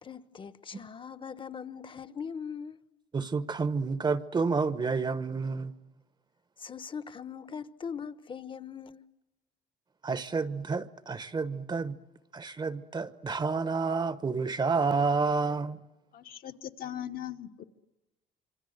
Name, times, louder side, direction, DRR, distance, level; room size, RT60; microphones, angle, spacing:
voice 1, 0.0-2.8 6.6-9.0, left 6 dB, 30° left, 1.0 m, -41 dB
voice 2, 3.1-5.7 10.0-12.0 12.3-15.8, right 4 dB, 25° right, 1.0 m, -29 dB
voice 3, 16.1-17.6, left 11 dB, 60° left, 1.4 m, -39 dB
26.5 x 24.5 x 7.9 m
cardioid pair, 110°, 17 cm